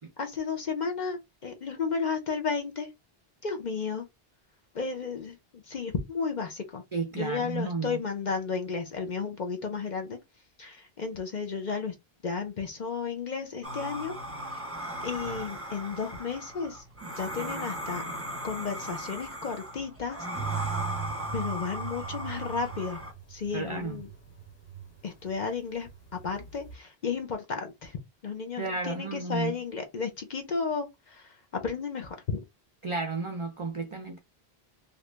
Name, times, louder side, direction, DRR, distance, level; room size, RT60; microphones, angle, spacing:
voice 1, 0.2-2.9 3.4-4.1 4.7-6.8 7.1-10.2 10.6-11.9 12.2-14.6 15.0-16.8 17.2-18.0 18.4-20.2 20.4-20.7 21.3-23.0 23.3-24.1 25.0-32.4, left 5 dB, 55° left, 0.7 m, -33 dB
voice 2, 6.9-8.0 23.5-24.0 28.6-29.5 32.8-34.2, right 3 dB, 45° right, 0.4 m, -33 dB
sound 1, 13.6-23.1, equal, 15° right, 0.9 m, -37 dB
sound 2, 20.3-25.4 25.6-26.7, right 7 dB, 75° left, 1.6 m, -39 dB
2.9 x 2.5 x 3.3 m
omnidirectional pair, 1.0 m